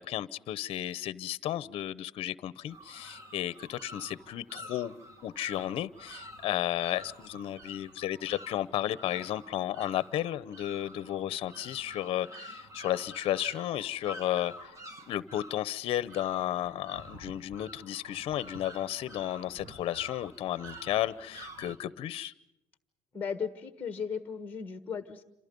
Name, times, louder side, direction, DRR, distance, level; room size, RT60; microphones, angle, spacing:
voice 1, 0.0-4.9 5.2-14.8 15.1-22.3, left 13 dB, 55° left, 17 dB, 0.8 m, -33 dB
sound 1, 2.7-21.8, right 1 dB, 25° right, 2.0 m, -48 dB
voice 2, 23.1-25.2, left 6 dB, 15° left, 9 dB, 1.4 m, -36 dB
28.5 x 27.0 x 5.4 m, 0.85 s
cardioid pair, 155°, 12 cm